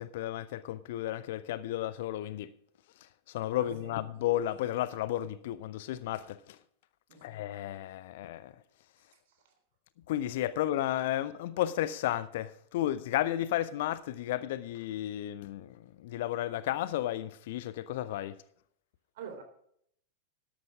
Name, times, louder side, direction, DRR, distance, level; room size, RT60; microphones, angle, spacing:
voice 1, 0.0-2.5 3.0-6.6 7.2-8.5 10.1-18.4, left 13 dB, 55° left, 0.6 m, -33 dB
voice 2, 3.5-3.9 7.1-7.3 9.3-9.5 19.1-19.4, right 7 dB, 55° right, 3.6 m, -46 dB
13.0 x 11.5 x 3.7 m
figure-of-eight pair, 90°, 0 cm